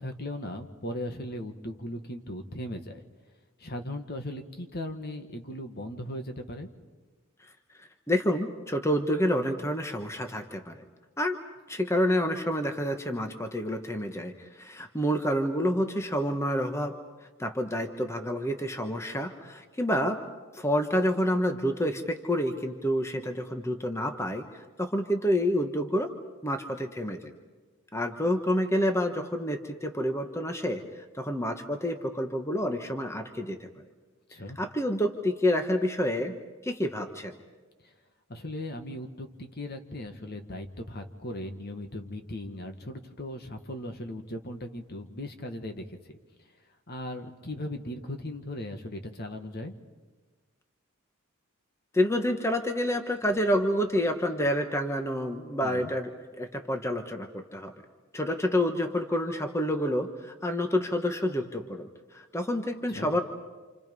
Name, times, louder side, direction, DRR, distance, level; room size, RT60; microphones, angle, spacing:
voice 1, 0.0-3.0 3.6-6.7 34.3-34.6 38.3-46.2 46.9-49.7 55.6-55.9 62.9-63.1, left 1 dB, 50° left, 6 dB, 1.8 m, -38 dB
voice 2, 7.8-10.8 11.2-11.4 11.7-16.9 17.4-20.2 20.5-26.1 26.4-27.3 27.9-33.7 34.6-36.3 36.6-37.3 51.9-57.7 58.1-63.2, equal, 15° left, 5 dB, 1.3 m, -28 dB
29.0 x 28.0 x 5.5 m, 1.3 s
head